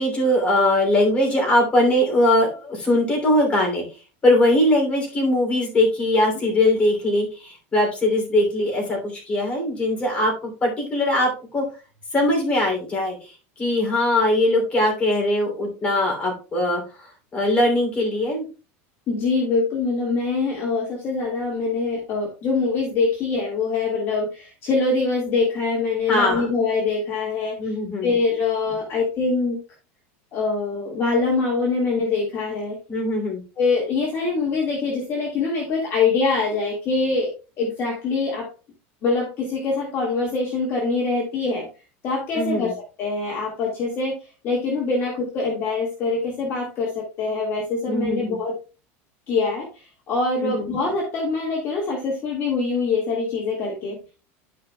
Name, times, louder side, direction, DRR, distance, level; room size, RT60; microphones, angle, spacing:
voice 1, 0.0-3.8 4.2-11.6 12.1-13.3 13.6-16.8 17.3-18.4 26.1-26.5 27.6-28.1 32.9-33.4 42.3-42.7 47.9-48.4 50.4-50.7, left 1 dB, 15° left, -1 dB, 2.9 m, -21 dB
voice 2, 19.1-27.7 28.0-29.6 30.3-32.8 33.6-38.5 39.0-41.7 42.0-42.7 43.0-44.1 44.4-48.5 49.3-54.0, left 4 dB, 35° left, -2 dB, 1.8 m, -24 dB
12.0 x 5.2 x 2.2 m, 0.33 s
supercardioid pair, 165°, 7 cm